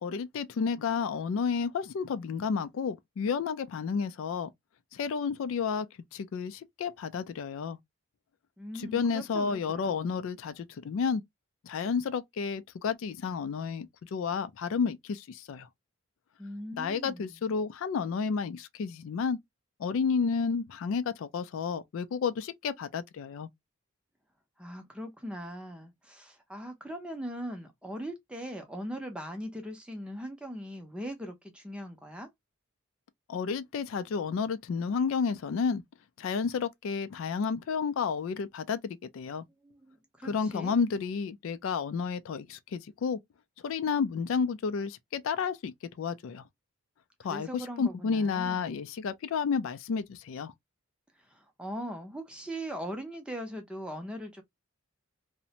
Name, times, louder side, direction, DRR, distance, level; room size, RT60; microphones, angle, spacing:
voice 1, 0.0-4.5 4.9-5.9 6.1-7.8 8.8-11.2 11.6-15.7 16.8-19.4 19.8-23.5 33.3-35.8 36.2-39.4 40.2-43.2 43.6-46.4 47.2-50.5, left 5 dB, 65° left, 0.3 m, -31 dB
voice 2, 8.6-10.0 16.4-17.4 24.6-32.3 39.6-40.8 47.2-48.7 51.2-54.4, equal, 5° right, 0.5 m, -40 dB
2.5 x 2.1 x 2.7 m
head